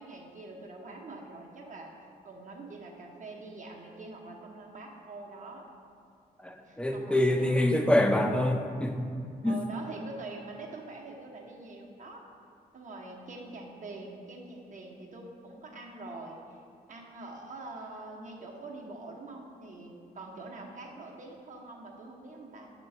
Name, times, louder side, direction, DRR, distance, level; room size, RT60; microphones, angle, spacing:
voice 1, 0.0-1.9 2.2-5.7 6.6-7.7 9.4-12.2 12.7-16.6 16.9-22.7, right 2 dB, 45° right, 0 dB, 1.1 m, -44 dB
voice 2, 6.4-9.1 9.4-9.6, left 1 dB, 5° left, 4 dB, 0.6 m, -26 dB
6.7 x 3.1 x 5.5 m, 2.4 s
supercardioid pair, 55°, 18 cm